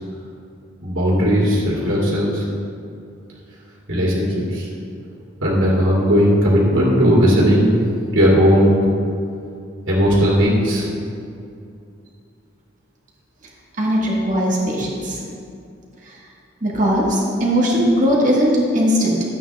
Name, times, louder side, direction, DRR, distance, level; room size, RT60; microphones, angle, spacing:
voice 1, 0.8-2.4 3.9-4.7 5.4-7.8 8.1-8.8 9.9-10.9, equal, 90° right, -6 dB, 2.8 m, -16 dB
voice 2, 13.8-15.2 16.0-16.2 16.6-19.2, equal, 40° right, -4 dB, 1.9 m, -19 dB
13.0 x 8.8 x 3.5 m, 2.5 s
head